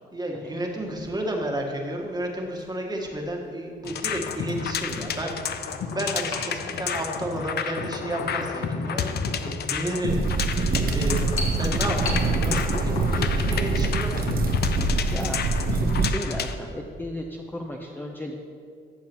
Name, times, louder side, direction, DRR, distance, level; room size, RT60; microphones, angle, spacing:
voice 1, 0.1-15.1, right 1 dB, 20° right, 1 dB, 1.4 m, -32 dB
sound 1, 0.8-1.1 2.5-2.6 3.2-3.3 3.8-13.7, left 2 dB, 80° left, 2.0 m, -36 dB
sound 2, 3.9-16.6, left 7 dB, 55° left, 0.6 m, -31 dB
sound 3, 10.1-16.1, right 4 dB, 50° right, 0.8 m, -25 dB
voice 2, 15.1-15.4 15.7-18.4, left 1 dB, 10° left, 0 dB, 0.6 m, -35 dB
13.5 x 7.2 x 3.0 m, 2.3 s
cardioid pair, 90°, 20 cm